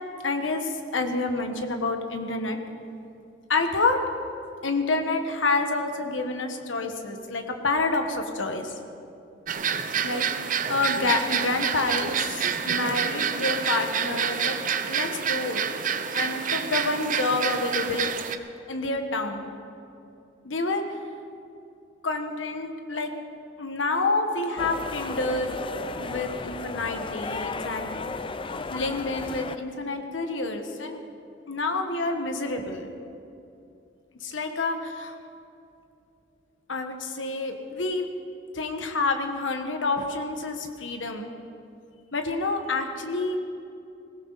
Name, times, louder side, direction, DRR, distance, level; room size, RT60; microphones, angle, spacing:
voice 1, 0.2-2.6 3.5-4.0 4.6-8.7 10.0-10.2 10.7-14.6 14.9-15.6 16.1-18.1 18.7-19.6 20.4-20.8 22.0-23.1 23.6-25.5 26.0-27.9 28.7-31.0 31.5-32.9 34.2-35.1 36.7-38.1 38.5-41.3 42.1-43.4, left 3 dB, 85° left, 5 dB, 1.4 m, -28 dB
sound 1, 9.5-18.4, right 7 dB, 45° right, 0.7 m, -28 dB
sound 2, 24.6-29.6, left 3 dB, 30° left, 0.5 m, -34 dB
20.5 x 17.0 x 4.1 m, 2.7 s
head